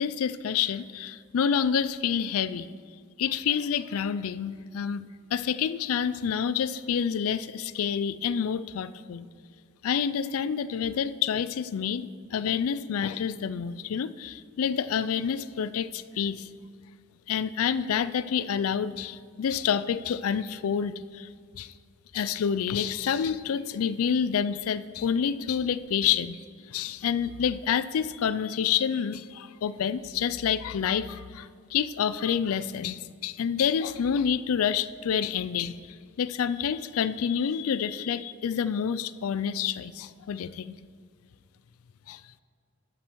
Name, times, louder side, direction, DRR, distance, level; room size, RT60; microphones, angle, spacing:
voice 1, 0.0-2.7 3.2-5.0 5.3-9.3 9.8-16.5 17.3-21.3 21.6-21.7 22.1-26.4 26.7-35.8 36.2-40.8 42.1-42.2, left 7 dB, 80° left, 15 dB, 0.4 m, -28 dB
12.5 x 7.6 x 4.6 m, 2.1 s
head